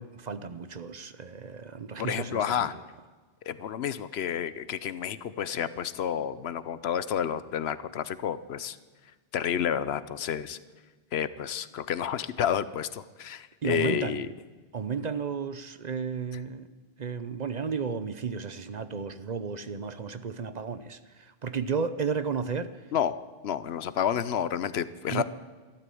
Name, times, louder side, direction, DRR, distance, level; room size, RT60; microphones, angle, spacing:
voice 1, 0.0-2.8 13.6-14.3 14.7-16.7 17.0-22.8 25.1-25.2, right 5 dB, 45° right, 12 dB, 0.8 m, -33 dB
voice 2, 2.0-2.7 3.5-8.8 9.3-10.6 11.1-14.3 22.9-23.1 23.4-25.2, left 9 dB, 80° left, 15 dB, 1.0 m, -30 dB
13.0 x 12.5 x 8.5 m, 1.4 s
omnidirectional pair, 1.0 m